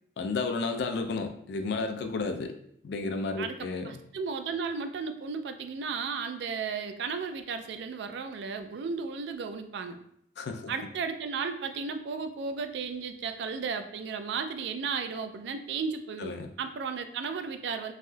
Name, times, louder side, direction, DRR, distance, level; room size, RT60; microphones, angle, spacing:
voice 1, 0.2-2.6 2.8-4.0 10.4-10.7 16.2-16.5, left 3 dB, 60° left, 6 dB, 0.3 m, -32 dB
voice 2, 3.4-10.0 10.7-17.9, right 5 dB, 65° right, 8 dB, 0.3 m, -34 dB
3.3 x 2.6 x 2.2 m, 0.71 s
head